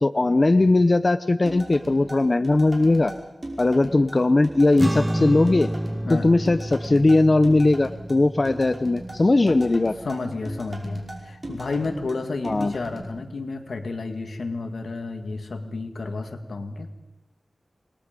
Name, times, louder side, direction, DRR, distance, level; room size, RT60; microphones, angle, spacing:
voice 1, 0.0-3.1 3.6-5.7 6.1-9.9 12.4-12.7, left 2 dB, 40° left, 11 dB, 0.7 m, -19 dB
sound 1, 1.5-13.0, right 1 dB, 40° right, 5.5 m, -39 dB
sound 2, 4.8-11.4, right 1 dB, 15° right, 0.9 m, -31 dB
voice 2, 10.0-16.9, left 3 dB, 85° left, 6 dB, 2.2 m, -31 dB
28.0 x 21.0 x 5.4 m, 0.98 s
wide cardioid pair, 85°, 0 cm